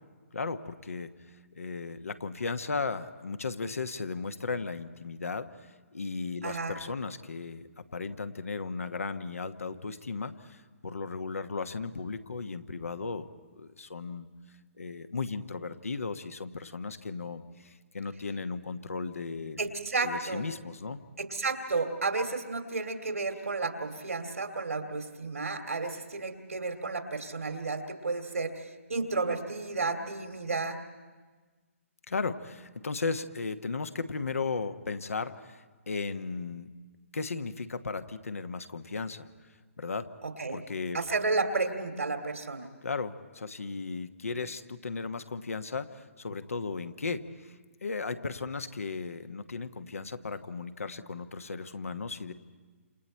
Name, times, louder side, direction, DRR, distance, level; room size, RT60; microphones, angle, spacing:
voice 1, 0.3-1.1 1.6-5.5 5.9-10.6 10.8-13.3 13.6-14.3 14.8-19.6 20.0-21.0 32.1-36.7 37.1-39.3 39.8-40.1 40.5-41.0 42.8-47.2 47.8-52.3, left 4 dB, 75° left, 9 dB, 1.2 m, -35 dB
voice 2, 6.4-6.8 19.6-20.4 21.2-30.8 40.2-40.6 40.9-42.7, right 3 dB, 80° right, 6 dB, 2.5 m, -32 dB
28.5 x 27.5 x 4.4 m, 1.4 s
figure-of-eight pair, 140°, 8 cm